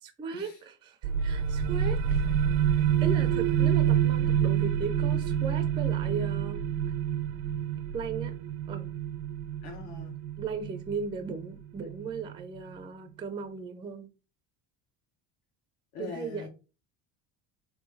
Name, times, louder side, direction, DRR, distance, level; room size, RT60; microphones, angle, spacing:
voice 1, 0.0-2.2 2.7-6.6 7.9-8.4 8.7-8.9 10.4-14.1 16.0-16.5, right 5 dB, 15° right, 0.3 m, -37 dB
sound 1, 1.0-12.4, right 9 dB, 70° right, 0.5 m, -28 dB
voice 2, 9.6-10.2 15.9-16.5, left 5 dB, 85° left, 1.8 m, -42 dB
3.8 x 3.0 x 3.9 m
cardioid pair, 150°, 39 cm